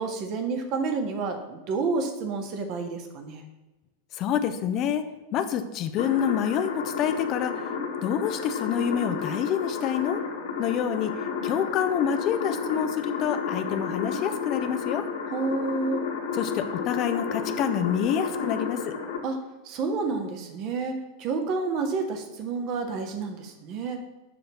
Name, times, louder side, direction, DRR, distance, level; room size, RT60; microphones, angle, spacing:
voice 1, 0.0-3.4 15.3-16.0 19.2-19.4 19.6-24.0, right 4 dB, 40° right, 6 dB, 1.7 m, -29 dB
voice 2, 4.1-5.0 5.3-7.6 8.0-10.2 10.6-11.1 11.4-15.0 16.3-18.9, left 8 dB, 35° left, 9 dB, 0.9 m, -27 dB
sound 1, 6.0-19.2, left 6 dB, 65° left, 2.2 m, -31 dB
13.0 x 4.6 x 7.4 m, 1.1 s
figure-of-eight pair, 90°, 0 cm